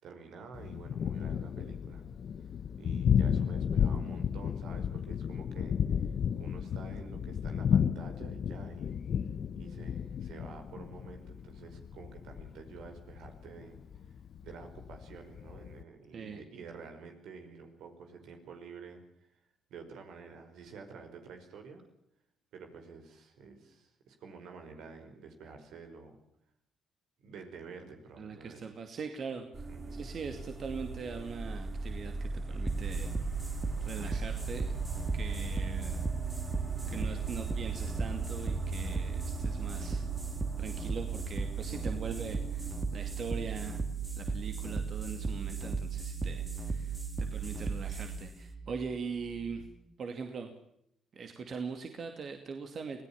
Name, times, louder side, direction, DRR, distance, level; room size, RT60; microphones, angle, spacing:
voice 1, 0.0-2.0 2.8-6.0 6.4-8.9 9.5-13.8 14.4-19.0 19.7-21.8 22.5-26.2 27.2-28.6 29.7-30.0 33.2-33.3, right 5 dB, 80° right, 5 dB, 5.1 m, -49 dB
Thunder, 0.5-15.8, left 8 dB, 60° left, 0.9 m, -33 dB
voice 2, 16.1-16.4 28.2-33.5 33.8-34.7 35.1-36.0 36.9-40.1 40.6-43.8 44.1-49.7 50.0-50.5 51.1-53.0, right 5 dB, 55° right, 5 dB, 2.5 m, -41 dB
sound 1, 29.5-43.7, right 2 dB, 35° right, 4.4 m, -40 dB
sound 2, 32.7-49.7, right 5 dB, 15° right, 2.2 m, -36 dB
25.0 x 17.5 x 7.2 m, 0.74 s
cardioid pair, 90°, 0 cm